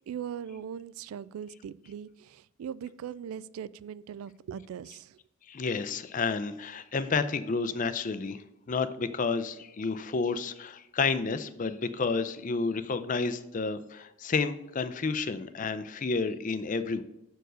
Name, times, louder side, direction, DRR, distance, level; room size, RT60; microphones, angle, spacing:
voice 1, 0.1-5.2, right 8 dB, 85° right, 19 dB, 0.3 m, -40 dB
voice 2, 5.5-17.0, left 4 dB, 40° left, 12 dB, 0.4 m, -30 dB
6.5 x 4.6 x 6.2 m, 0.89 s
head